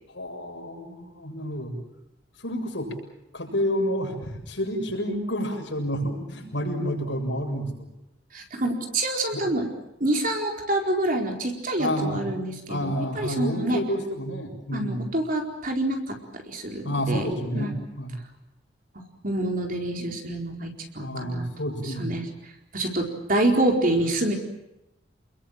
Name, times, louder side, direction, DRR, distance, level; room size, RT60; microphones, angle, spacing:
voice 1, 0.1-1.8 2.4-2.9 3.3-7.9 9.3-9.4 11.8-12.3 12.7-15.1 16.8-18.2 20.0-20.1 21.0-22.2, equal, 75° left, 1 dB, 7.2 m, -29 dB
voice 2, 8.3-9.7 10.0-13.8 14.7-16.2 16.5-17.2 17.5-17.7 19.2-21.4 22.0-22.2 22.7-24.3, right 1 dB, 45° right, 2 dB, 4.4 m, -26 dB
29.5 x 21.5 x 7.5 m, 0.90 s
head